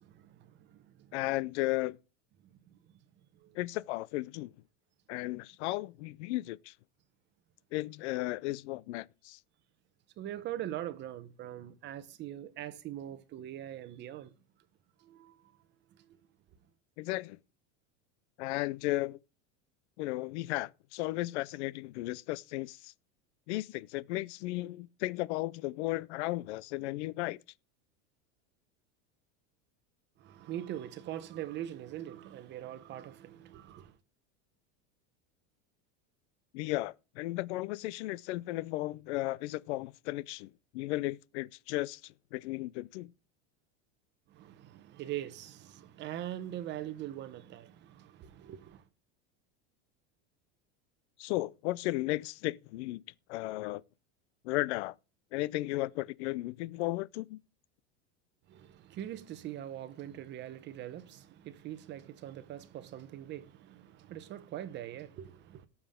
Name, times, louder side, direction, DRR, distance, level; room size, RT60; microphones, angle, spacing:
voice 1, 0.0-1.2 2.5-2.8 3.4-3.6 10.2-14.3 15.0-15.5 15.9-16.2 30.2-34.0 44.3-48.8 58.5-65.7, right 12 dB, 30° right, 0.9 m, -42 dB
voice 2, 1.1-2.0 3.5-4.5 5.1-6.7 7.7-9.4 17.0-17.4 18.4-19.2 20.0-22.9 23.5-27.4 36.5-43.1 51.2-53.0 53.3-53.8 54.4-54.9 55.3-57.4, left 18 dB, 70° left, 0.6 m, -35 dB
18.0 x 7.2 x 3.6 m
supercardioid pair, 160°, 36 cm